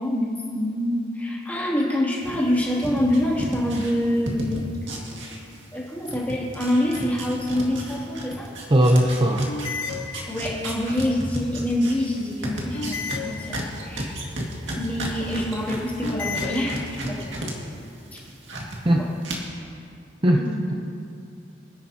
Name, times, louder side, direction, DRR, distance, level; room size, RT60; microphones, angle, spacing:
voice 1, 0.0-4.6 5.7-8.5 10.3-14.1 14.8-17.3 18.9-19.1 20.4-20.7, left 1 dB, 10° left, -6 dB, 2.6 m, -26 dB
sound 1, 2.2-5.8 6.1-17.5 17.9-18.8 19.2-19.3, right 1 dB, 70° right, 2.0 m, -33 dB
sound 2, 6.9-7.5 9.5-10.8 12.7-14.1 16.0-17.3, left 5 dB, 70° left, 0.9 m, -34 dB
voice 2, 8.7-9.5 18.8-19.1 20.2-20.4, right 1 dB, 25° right, 1 dB, 0.6 m, -18 dB
24.5 x 10.5 x 2.8 m, 2.4 s
head